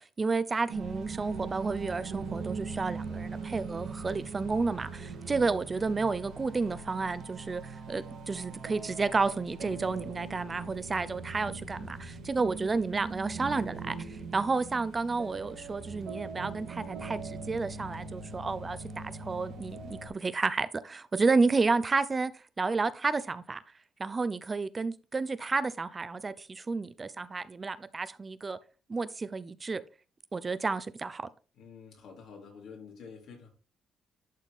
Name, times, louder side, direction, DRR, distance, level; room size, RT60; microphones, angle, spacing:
voice 1, 0.0-22.3 22.6-23.6 24.0-28.6 28.9-29.8 30.3-31.3, right 4 dB, 30° right, 0.5 m, -31 dB
sound 1, 0.7-20.1, right 4 dB, 80° right, 2.7 m, -41 dB
voice 2, 31.5-33.5, left 5 dB, 70° left, 3.6 m, -48 dB
11.5 x 4.2 x 3.5 m
cardioid pair, 90°, 0 cm